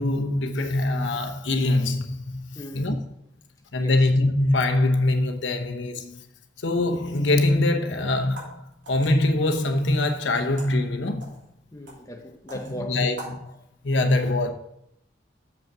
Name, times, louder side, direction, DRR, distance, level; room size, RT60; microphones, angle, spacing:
voice 1, 0.0-2.5 2.7-3.0 3.7-6.2 6.6-8.6 8.9-11.4 12.9-13.5 13.8-14.5, left 2 dB, 90° left, 0.9 m, -23 dB
voice 2, 2.5-3.0 3.7-4.1 11.7-13.1, equal, 20° left, 0.9 m, -38 dB
sound 1, 8.2-13.4, right 1 dB, 85° right, 3.2 m, -45 dB
7.3 x 5.5 x 6.0 m
head